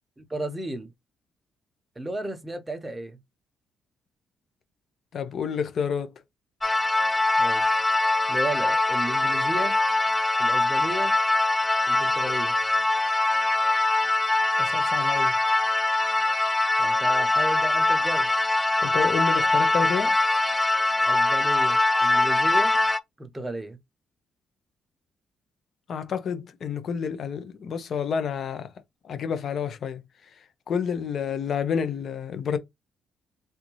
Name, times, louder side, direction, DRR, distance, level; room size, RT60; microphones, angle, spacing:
voice 1, 0.2-0.9 2.0-3.2 7.4-7.8 8.3-9.8 10.4-11.2 11.9-12.5 16.8-18.3 21.1-22.8 23.2-23.8, right 1 dB, 15° right, 0.9 m, -34 dB
voice 2, 5.1-6.1 14.6-15.3 18.8-20.1 25.9-28.7 29.1-30.0 30.7-32.6, left 6 dB, 55° left, 0.8 m, -29 dB
sound 1, 6.6-23.0, left 2 dB, 20° left, 0.5 m, -23 dB
3.6 x 2.6 x 3.1 m
cardioid pair, 90°, 0 cm